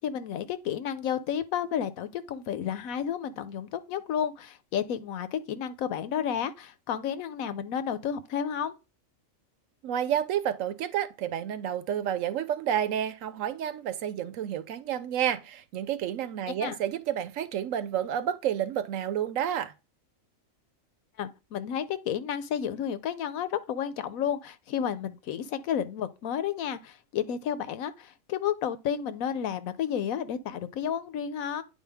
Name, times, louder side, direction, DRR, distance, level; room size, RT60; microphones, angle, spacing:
voice 1, 0.0-8.7 16.6-16.8 21.2-31.6, left 8 dB, 85° left, 1.1 m, -31 dB
voice 2, 9.8-19.7, right 10 dB, 75° right, 1.0 m, -30 dB
9.2 x 4.5 x 3.4 m
omnidirectional pair, 1.4 m